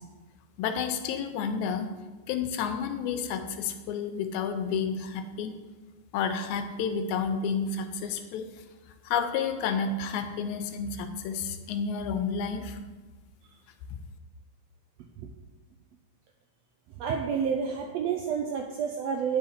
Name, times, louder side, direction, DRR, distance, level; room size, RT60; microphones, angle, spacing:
voice 1, 0.6-1.9 2.3-5.5 6.1-8.5 9.0-12.8, left 6 dB, 85° left, 8 dB, 2.0 m, -30 dB
voice 2, 17.0-19.4, right 6 dB, 85° right, 4 dB, 1.4 m, -29 dB
9.0 x 4.8 x 4.2 m, 1.3 s
omnidirectional pair, 3.4 m